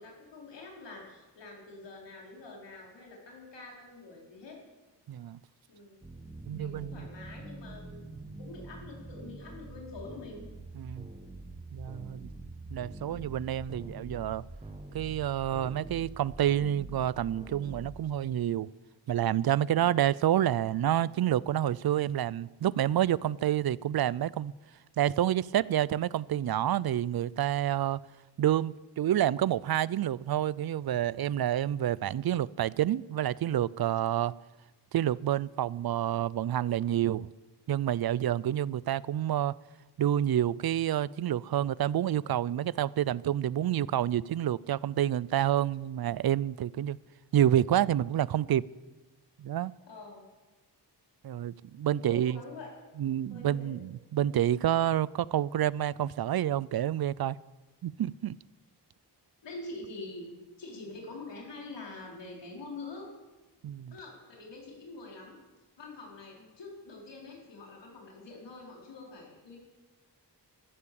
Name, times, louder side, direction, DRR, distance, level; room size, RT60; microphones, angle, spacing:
voice 1, 0.0-4.6 5.7-6.0 6.5-8.1 8.4-10.5 19.8-19.9 34.1-34.2 49.9-50.2 52.1-52.7 53.3-53.8 59.4-60.3 60.6-63.1 63.9-65.4 65.8-69.6, left 3 dB, 90° left, 4.7 m, -45 dB
voice 2, 5.1-5.4 6.5-7.1 10.8-11.1 11.7-12.3 12.7-14.4 14.9-18.7 19.1-24.5 25.0-28.0 28.4-34.3 34.9-37.3 37.7-39.6 40.0-47.0 47.3-48.6 49.4-49.7 51.2-52.4 53.0-57.4 57.8-58.3 63.6-63.9, right 11 dB, 60° right, 0.5 m, -28 dB
sound 1, 6.0-18.0, right 2 dB, 15° right, 1.6 m, -45 dB
14.0 x 13.5 x 7.0 m
wide cardioid pair, 110°, 42 cm